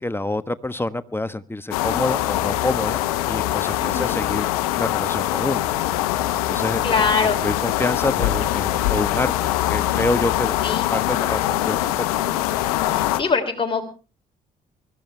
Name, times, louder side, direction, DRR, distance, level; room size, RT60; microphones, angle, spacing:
voice 1, 0.0-4.5 4.8-5.6 6.5-6.8 7.2-10.6 10.9-11.4 11.6-11.9, left 2 dB, 10° left, 13 dB, 1.2 m, -27 dB
sound 1, 1.7-13.2, left 14 dB, 85° left, 0.9 m, -23 dB
voice 2, 3.8-4.2 6.8-7.4 10.6-10.8 12.9-13.8, left 5 dB, 30° left, 2 dB, 3.4 m, -23 dB
24.0 x 14.0 x 3.4 m, 0.35 s
hypercardioid pair, 50°, 18 cm